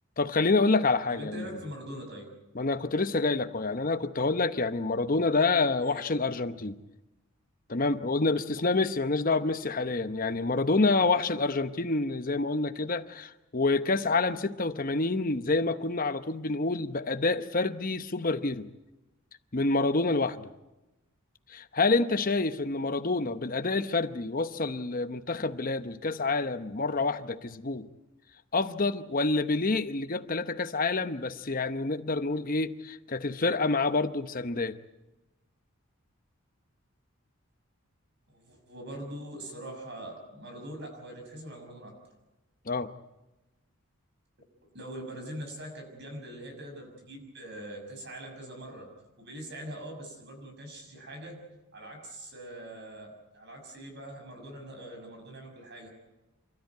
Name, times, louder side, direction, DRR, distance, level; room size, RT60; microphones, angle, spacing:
voice 1, 0.2-1.5 2.5-6.8 7.7-18.7 19.5-20.4 21.5-27.9 28.5-34.8 42.7-42.9, left 3 dB, 40° left, 10 dB, 0.9 m, -27 dB
voice 2, 1.1-2.3 5.8-6.0 38.3-42.0 44.6-48.9 49.2-51.4 51.7-55.9, right 1 dB, 50° right, 3 dB, 6.4 m, -43 dB
28.0 x 13.5 x 9.5 m, 1.0 s
head